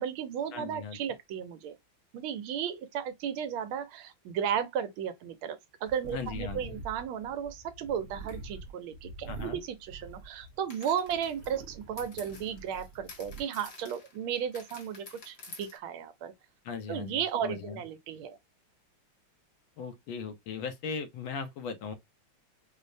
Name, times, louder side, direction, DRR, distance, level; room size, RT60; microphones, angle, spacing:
voice 1, 0.0-1.7 2.1-16.3 16.9-18.4, right 8 dB, 80° right, 1.4 m, -34 dB
voice 2, 0.5-1.0 6.1-6.8 9.3-9.6 16.6-17.8 19.8-21.9, left 6 dB, 80° left, 1.5 m, -38 dB
sound 1, 5.9-6.2 8.3-8.4 10.7-15.8, left 3 dB, 45° left, 1.1 m, -50 dB
sound 2, 5.9-10.7 11.0-13.4, right 3 dB, 60° right, 1.4 m, -46 dB
5.0 x 2.1 x 2.5 m
omnidirectional pair, 2.3 m